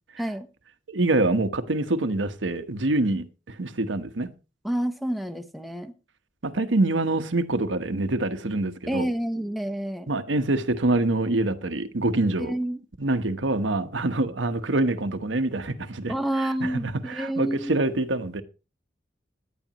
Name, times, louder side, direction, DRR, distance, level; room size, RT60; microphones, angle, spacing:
voice 1, 0.9-4.3 6.4-9.1 10.1-12.5 13.0-18.4, right 2 dB, 90° right, 1.1 m, -25 dB
voice 2, 4.6-5.9 8.9-10.1 12.4-12.8 16.1-17.9, right 1 dB, ahead, 0.9 m, -29 dB
16.5 x 11.5 x 3.0 m
head